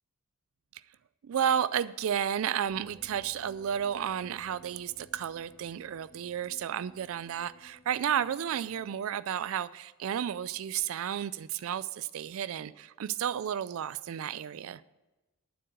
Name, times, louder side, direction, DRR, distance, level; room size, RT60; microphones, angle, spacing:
voice 1, 1.2-14.8, right 9 dB, 70° right, 15 dB, 0.3 m, -32 dB
sound 1, 2.7-9.0, equal, 70° left, 1.7 m, -57 dB
9.5 x 7.6 x 7.7 m, 1.1 s
head